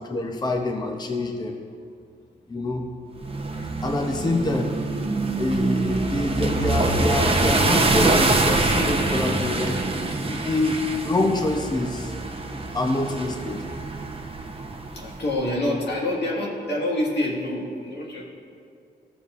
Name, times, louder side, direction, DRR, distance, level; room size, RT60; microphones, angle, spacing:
voice 1, 0.0-1.6 2.5-2.9 3.8-4.8 5.4-9.8 10.2-10.8 11.0-12.1 12.7-13.6, left 2 dB, 25° left, 3 dB, 0.7 m, -26 dB
sound 1, 3.2-15.3, right 2 dB, 35° right, 0.8 m, -25 dB
voice 2, 5.2-5.5 14.9-18.2, left 1 dB, 80° left, -3 dB, 1.8 m, -28 dB
15.0 x 6.9 x 2.5 m, 2.3 s
wide cardioid pair, 105°, 18 cm